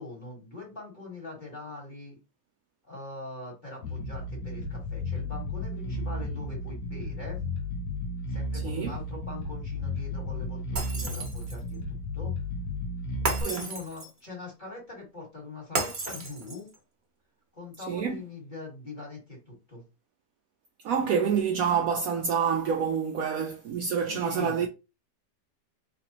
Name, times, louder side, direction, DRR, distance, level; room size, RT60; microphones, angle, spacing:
voice 1, 0.0-2.2 2.9-7.4 8.3-12.3 13.4-16.7 17.5-19.8 24.1-24.7, left 2 dB, 30° left, 1.8 m, -42 dB
Bass guitar, 3.8-13.4, left 2 dB, 75° left, 1.4 m, -34 dB
Shatter, 10.8-11.7 13.3-14.2 15.8-16.8, right 3 dB, 40° right, 1.1 m, -33 dB
voice 2, 17.9-18.2 20.8-24.7, right 7 dB, 70° right, 0.9 m, -27 dB
4.1 x 3.3 x 2.9 m
omnidirectional pair, 1.8 m